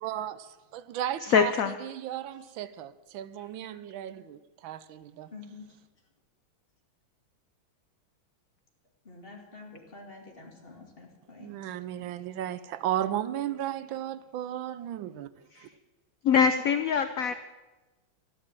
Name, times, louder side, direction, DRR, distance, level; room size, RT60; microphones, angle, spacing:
voice 1, 0.0-1.5 1.8-5.3 11.4-15.3 15.6-15.7, right 11 dB, 85° right, 15 dB, 1.4 m, -35 dB
voice 2, 1.2-1.8 15.5-15.7 16.2-17.3, left 6 dB, 70° left, 10 dB, 0.8 m, -24 dB
voice 3, 5.3-5.7 9.0-11.5 12.0-12.2, left 3 dB, 30° left, 1 dB, 2.3 m, -48 dB
13.0 x 11.0 x 7.4 m, 1.2 s
omnidirectional pair, 2.1 m